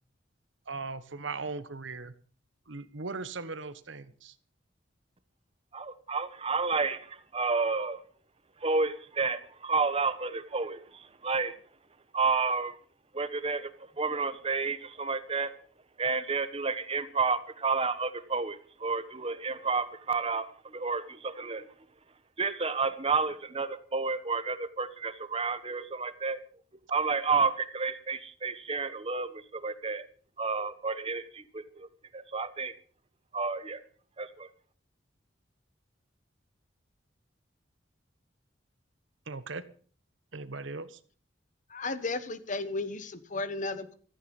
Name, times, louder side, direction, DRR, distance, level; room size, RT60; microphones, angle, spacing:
voice 1, 0.7-2.1 2.7-4.3 39.3-39.6 40.3-41.0, right 3 dB, 75° right, 1.2 m, -38 dB
voice 2, 5.7-8.0 8.6-11.5 12.1-12.8 13.1-13.7 14.0-15.5 16.0-21.7 22.4-26.4 26.9-30.1 30.4-31.9 32.1-32.7 33.3-33.8 34.2-34.5, right 4 dB, 30° right, 1.2 m, -30 dB
voice 3, 41.7-43.9, left 3 dB, 40° left, 1.2 m, -34 dB
15.5 x 14.0 x 5.4 m
head